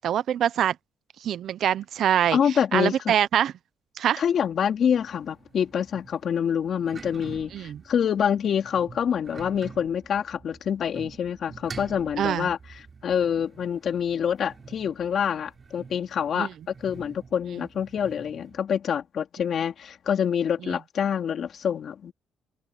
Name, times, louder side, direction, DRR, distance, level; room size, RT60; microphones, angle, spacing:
voice 1, 0.0-0.7 1.2-2.4 2.7-3.5 4.0-4.2 7.5-7.8 12.2-12.5 16.4-16.5 20.6-20.8, right 10 dB, 70° right, 0.7 m, -24 dB
voice 2, 2.3-3.1 4.2-22.1, left 8 dB, 60° left, 3.1 m, -26 dB
sound 1, 4.4-18.6, right 5 dB, 40° right, 6.9 m, -47 dB
cardioid pair, 90°, 0 cm